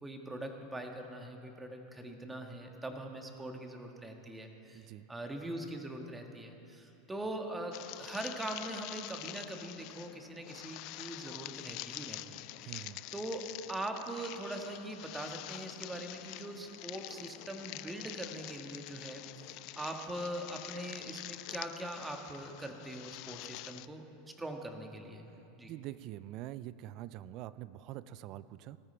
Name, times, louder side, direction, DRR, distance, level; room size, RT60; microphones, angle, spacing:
voice 1, 0.0-24.0 24.4-25.3 25.6-25.7, right 1 dB, 10° right, 3 dB, 1.5 m, -42 dB
voice 2, 4.7-5.1 12.7-13.0 25.6-28.8, right 14 dB, 55° right, 17 dB, 0.4 m, -45 dB
sound 1, 7.7-23.9, left 18 dB, 55° left, 0.3 m, -46 dB
18.5 x 13.5 x 3.4 m, 2.8 s
hypercardioid pair, 105°, 0 cm